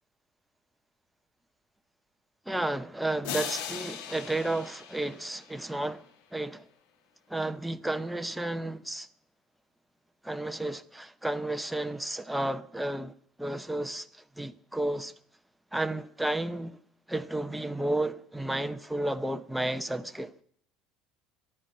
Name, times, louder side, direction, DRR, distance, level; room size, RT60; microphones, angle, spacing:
voice 1, 2.5-6.0 6.3-6.7 7.3-9.1 10.2-13.1 13.4-15.1 15.7-16.8 17.1-20.3, right 1 dB, 5° right, 0.8 m, -32 dB
sound 1, 3.2-5.9, left 9 dB, 85° left, 2.3 m, -39 dB
14.5 x 11.0 x 8.9 m
cardioid pair, 150°, 0 cm